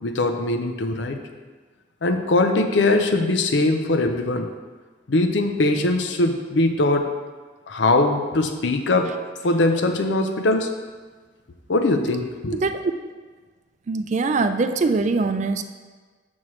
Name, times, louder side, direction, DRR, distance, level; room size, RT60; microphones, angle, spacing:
voice 1, 0.0-1.2 2.0-4.5 5.1-7.0 7.7-9.1 9.4-10.7 11.7-12.6, left 2 dB, 80° left, 6 dB, 0.6 m, -21 dB
voice 2, 12.5-12.9 13.9-15.6, right 3 dB, 40° right, 9 dB, 0.4 m, -22 dB
7.2 x 6.2 x 3.1 m, 1.4 s
head